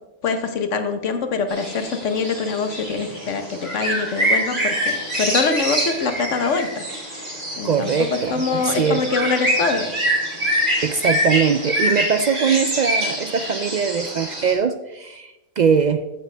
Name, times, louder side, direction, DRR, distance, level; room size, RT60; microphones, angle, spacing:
voice 1, 0.2-7.3 7.6-9.9, left 4 dB, 70° left, 8 dB, 1.3 m, -24 dB
sound 1, 1.5-14.5, equal, 40° right, 3.1 m, -25 dB
voice 2, 7.6-9.0 10.8-16.0, right 6 dB, 70° right, 9 dB, 0.4 m, -21 dB
14.5 x 7.7 x 3.3 m, 1.0 s
omnidirectional pair, 1.3 m